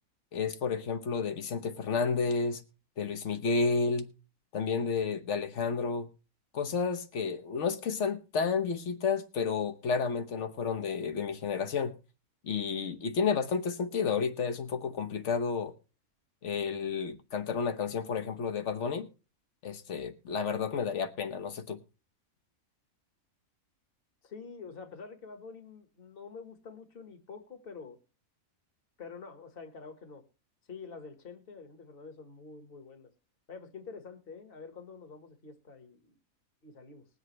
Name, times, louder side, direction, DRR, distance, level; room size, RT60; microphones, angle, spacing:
voice 1, 0.3-2.6 3.0-4.1 4.5-6.1 6.5-11.9 12.4-15.7 16.4-19.1 19.6-21.8, left 5 dB, 60° left, 1.3 m, -31 dB
voice 2, 24.2-28.0 29.0-30.2 30.7-33.1 33.5-36.2 36.6-37.0, left 5 dB, 40° left, 1.7 m, -47 dB
20.5 x 8.1 x 3.2 m
omnidirectional pair, 1.5 m